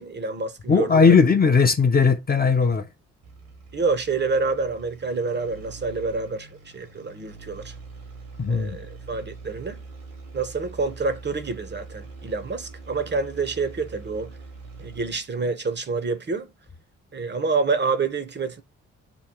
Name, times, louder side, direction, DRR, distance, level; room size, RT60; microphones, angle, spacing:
voice 1, 0.0-1.1 3.7-6.5 6.7-7.7 8.5-9.8 10.3-14.3 14.8-16.5 17.1-18.6, right 4 dB, 30° right, 0.6 m, -27 dB
voice 2, 0.7-2.9 8.4-8.8, left 5 dB, 30° left, 0.5 m, -18 dB
sound 1, 3.2-15.3, right 3 dB, 80° right, 1.2 m, -43 dB
3.0 x 2.3 x 3.5 m
supercardioid pair, 45°, 33 cm